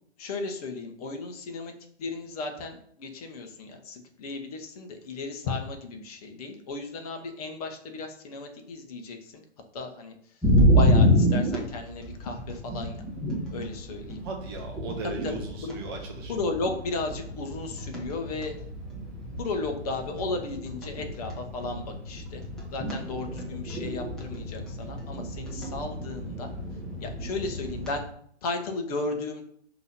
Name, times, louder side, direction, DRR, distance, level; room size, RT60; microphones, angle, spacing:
voice 1, 0.2-1.7 2.0-9.4 9.7-10.1 10.7-13.0 13.5-14.2 15.0-15.7 16.3-18.5 19.4-22.4 22.7-26.5 27.0-28.1 28.4-29.4, left 3 dB, 35° left, 4 dB, 1.0 m, -34 dB
sound 1, 10.4-28.0, equal, ahead, 1.0 m, -28 dB
voice 2, 14.2-16.3, right 3 dB, 20° right, 1 dB, 0.6 m, -37 dB
6.0 x 2.9 x 5.4 m, 0.63 s
figure-of-eight pair, 125°, 35 cm